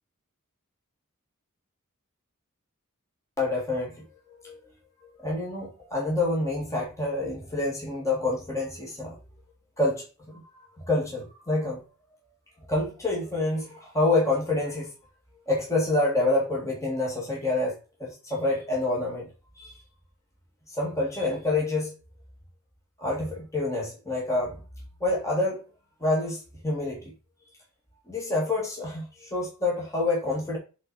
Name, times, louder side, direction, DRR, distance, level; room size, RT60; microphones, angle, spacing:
voice 1, 3.4-4.0 4.4-4.6 5.2-9.1 9.8-11.8 12.7-14.9 15.5-17.7 18.0-19.3 19.6-19.7 20.7-21.9 23.0-24.6 25.0-25.6 26.0-27.1 28.1-30.6, left 2 dB, 15° left, -3 dB, 2.1 m, -27 dB
7.5 x 4.1 x 4.7 m, 0.33 s
head